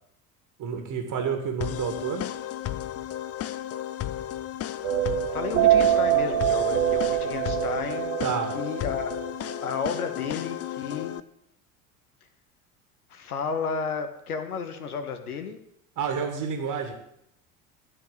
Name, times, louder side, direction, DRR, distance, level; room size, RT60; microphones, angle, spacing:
voice 1, 0.6-2.2 8.2-8.6 16.0-16.9, right 6 dB, 45° right, 4 dB, 2.5 m, -29 dB
sound 1, 1.6-11.2, left 12 dB, 35° left, 0.7 m, -34 dB
sound 2, 4.8-9.7, right 12 dB, 70° right, 1.3 m, -24 dB
voice 2, 5.3-8.2 8.5-9.1 9.6-11.2 13.1-15.6, left 5 dB, 80° left, 8 dB, 1.6 m, -32 dB
13.0 x 6.3 x 9.1 m, 0.76 s
figure-of-eight pair, 65°, 44 cm